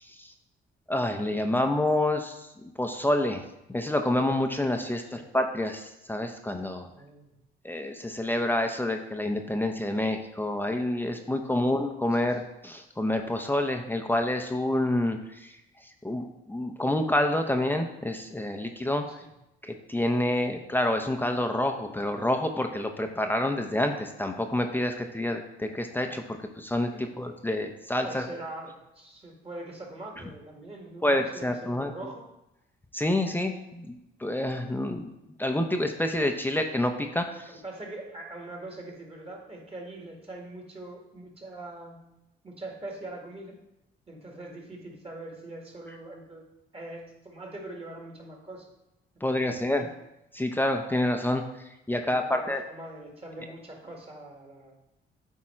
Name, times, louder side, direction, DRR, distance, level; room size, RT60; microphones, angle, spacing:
voice 1, 0.9-2.4 2.8-3.4 3.7-6.9 7.6-15.5 16.0-19.0 19.6-28.3 31.0-31.9 32.9-35.1 35.4-37.5 49.2-49.9 50.3-51.4 51.9-52.6, left 1 dB, 10° left, 4 dB, 0.6 m, -28 dB
voice 2, 6.9-7.3 11.5-11.7 12.3-12.4 19.1-19.3 26.9-27.2 28.0-32.3 37.5-42.0 42.4-43.6 44.1-46.5 46.7-48.7 49.1-49.9 52.1-54.8, right 2 dB, 30° right, 0 dB, 1.9 m, -43 dB
8.5 x 3.7 x 4.4 m, 0.89 s
cardioid pair, 90°, 20 cm